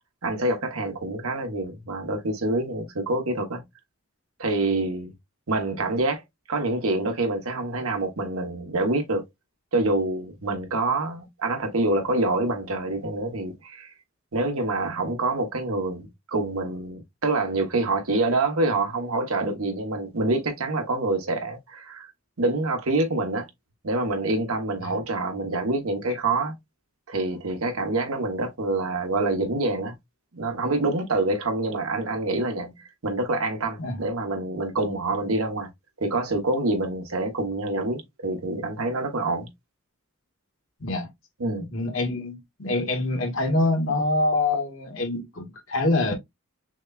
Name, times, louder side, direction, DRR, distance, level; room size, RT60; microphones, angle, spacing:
voice 1, 0.2-3.6 4.4-5.1 5.5-6.2 6.5-9.2 9.7-13.9 14.3-22.1 22.4-23.5 23.8-26.5 27.1-29.9 30.3-35.7 36.0-39.5 41.4-41.7, right 2 dB, 85° right, 1.1 m, -26 dB
voice 2, 41.6-46.1, left 2 dB, 65° left, 1.3 m, -25 dB
6.1 x 2.2 x 2.3 m
head